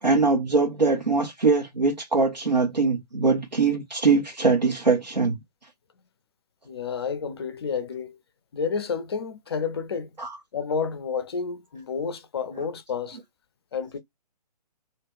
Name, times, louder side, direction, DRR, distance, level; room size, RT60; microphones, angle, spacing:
voice 1, 0.0-5.4 10.2-10.4, right 4 dB, 90° right, 0.7 m, -22 dB
voice 2, 6.6-8.2 8.5-10.1 10.5-13.2 13.7-14.0, left 5 dB, 40° left, 0.4 m, -30 dB
2.2 x 2.2 x 3.4 m
figure-of-eight pair, 135°, 21 cm